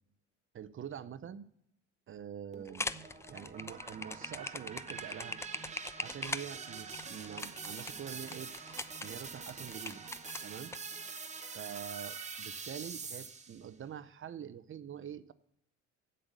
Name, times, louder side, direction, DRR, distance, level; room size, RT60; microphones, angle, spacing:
voice 1, 0.5-1.4 2.1-2.9 3.3-5.4 6.0-8.5 9.0-10.0 10.4-10.7 11.5-15.3, right 9 dB, 45° right, 14 dB, 0.7 m, -45 dB
sound 1, 2.5-13.7, right 5 dB, 25° right, 1.0 m, -45 dB
sound 2, 2.6-10.8, left 3 dB, 10° left, 0.3 m, -41 dB
8.0 x 7.8 x 6.6 m, 0.73 s
cardioid pair, 95°, 29 cm